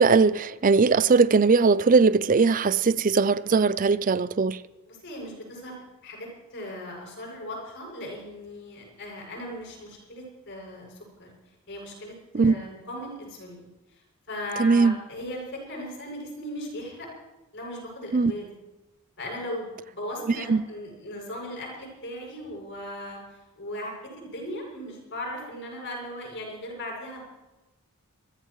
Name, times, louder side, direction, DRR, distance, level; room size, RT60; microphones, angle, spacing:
voice 1, 0.0-4.6 12.3-12.5 14.6-14.9 18.1-18.3 20.5-20.6, right 4 dB, 35° right, 0.4 m, -20 dB
voice 2, 4.9-11.3 11.7-17.1 17.5-18.5 19.2-27.2, left 1 dB, 55° left, 6.8 m, -38 dB
26.0 x 14.5 x 3.1 m
head